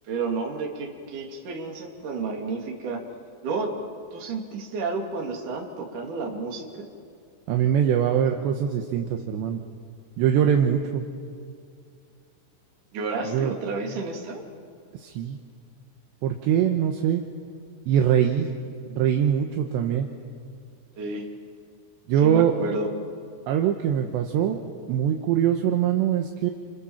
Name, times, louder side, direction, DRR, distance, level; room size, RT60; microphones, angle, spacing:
voice 1, 0.1-3.0 3.4-3.8 4.1-6.9 12.9-14.4 21.0-21.3 22.2-22.9, right 4 dB, 45° right, 1 dB, 3.9 m, -31 dB
voice 2, 7.5-9.6 10.2-11.0 13.2-13.6 14.9-15.4 16.2-17.2 17.9-18.5 18.9-20.1 22.1-22.5 23.5-24.6 24.9-26.5, right 9 dB, 70° right, 3 dB, 3.0 m, -23 dB
29.5 x 27.5 x 7.4 m, 2.3 s
omnidirectional pair, 5.9 m